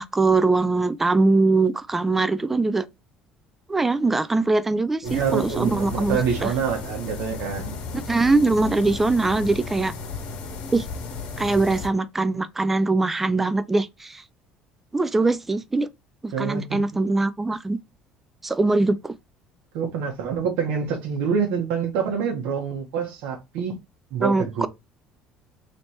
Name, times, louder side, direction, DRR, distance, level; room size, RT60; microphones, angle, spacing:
voice 1, 0.0-2.9 3.7-6.5 7.9-9.9 10.7-10.9 11.4-14.2 14.9-15.9 16.2-17.8 18.4-19.1 24.2-24.7, right 3 dB, 10° right, 0.3 m, -22 dB
sound 1, 5.0-11.9, left 4 dB, 55° left, 1.4 m, -34 dB
voice 2, 5.0-7.8 16.3-17.0 19.7-23.8 24.1-24.7, right 6 dB, 75° right, 1.1 m, -26 dB
3.2 x 3.1 x 4.2 m
cardioid pair, 155°, 2 cm